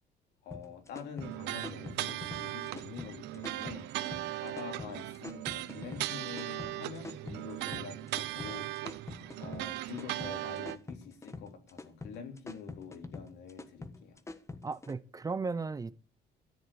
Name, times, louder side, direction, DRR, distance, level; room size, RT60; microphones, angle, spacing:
voice 1, 0.4-3.9 4.3-8.7 9.4-14.2, left 6 dB, 80° left, 3.5 m, -46 dB
sound 1, 0.5-14.9, left 3 dB, 15° left, 1.4 m, -45 dB
sound 2, 1.2-10.8, right 16 dB, 90° right, 0.8 m, -38 dB
voice 2, 14.6-15.9, right 4 dB, 20° right, 0.8 m, -35 dB
13.5 x 7.9 x 8.7 m
cardioid pair, 110°, 17 cm